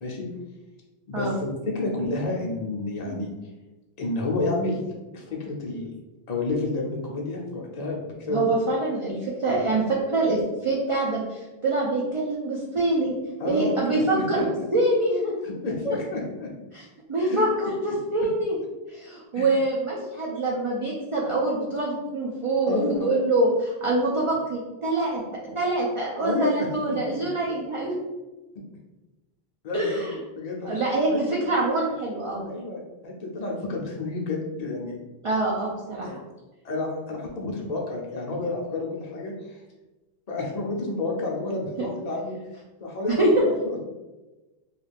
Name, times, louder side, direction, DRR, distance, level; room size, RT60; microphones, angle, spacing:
voice 1, 1.1-3.3 4.0-4.8 5.1-5.9 6.3-8.4 13.4-14.7 15.4-16.5 17.2-17.4 19.3-19.5 20.2-20.4 22.7-23.1 26.2-27.3 29.6-30.0 30.3-30.8 31.1-31.2 32.5-35.0 36.0-36.2 36.6-39.6 40.3-42.4 42.8-43.8, left 2 dB, 50° left, -1 dB, 0.6 m, -30 dB
voice 2, 8.3-13.1 13.4-15.3 16.7-16.8 17.1-18.6 18.9-25.2 25.5-27.9 29.7-30.2 30.6-32.5 35.2-36.1 41.8-41.9 43.1-43.4, right 2 dB, 50° right, -4 dB, 0.4 m, -25 dB
2.4 x 2.3 x 3.3 m, 1.1 s
omnidirectional pair, 1.0 m